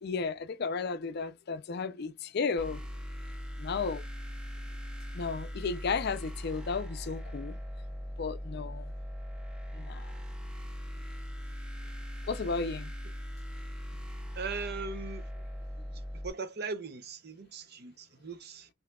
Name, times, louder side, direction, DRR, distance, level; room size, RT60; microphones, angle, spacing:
voice 1, 0.0-2.9 3.6-4.0 5.1-7.6 8.2-8.9 9.7-10.1 12.3-12.9, left 4 dB, 50° left, 0.4 m, -34 dB
sound 1, 2.6-16.3, equal, 5° right, 0.6 m, -40 dB
voice 2, 14.3-15.3 15.9-18.7, right 4 dB, 50° right, 0.6 m, -39 dB
5.8 x 2.7 x 2.3 m
head